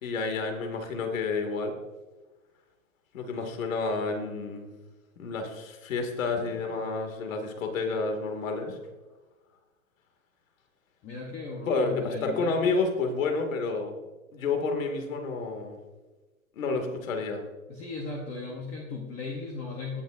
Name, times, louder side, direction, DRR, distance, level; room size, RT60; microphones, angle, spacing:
voice 1, 0.0-1.7 3.1-4.7 5.2-8.8 11.7-14.0 14.3-15.8 16.5-17.4, left 4 dB, 65° left, 5 dB, 2.3 m, -30 dB
voice 2, 11.0-12.6 17.7-20.0, left 3 dB, 15° left, 0 dB, 0.8 m, -37 dB
17.0 x 8.9 x 2.6 m, 1.2 s
hypercardioid pair, 160°, 43 cm